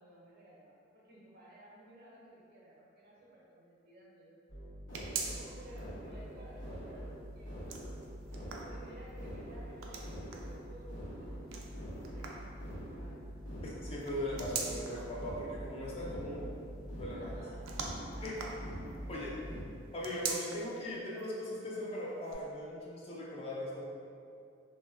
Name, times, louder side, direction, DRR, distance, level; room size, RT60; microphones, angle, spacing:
voice 1, 0.0-4.4 5.2-7.6 8.3-13.3 17.1-17.6 18.1-18.6 19.1-19.6, right 1 dB, 50° right, -6 dB, 0.6 m, -56 dB
sound 1, 4.5-19.6, equal, 70° left, 0.9 m, -44 dB
sound 2, 4.9-5.8 6.2-6.3 7.4-9.2 9.8-10.6 11.5-12.6 14.0-15.1 17.6-19.1 19.9-20.8 21.2-21.3 22.2-22.3, right 5 dB, 90° right, 0.3 m, -42 dB
voice 2, 13.6-16.5 17.0-17.4 18.2-18.3 19.1-19.3 19.9-23.8, left 1 dB, 30° left, -5 dB, 0.3 m, -39 dB
2.9 x 2.1 x 2.4 m, 2.4 s
head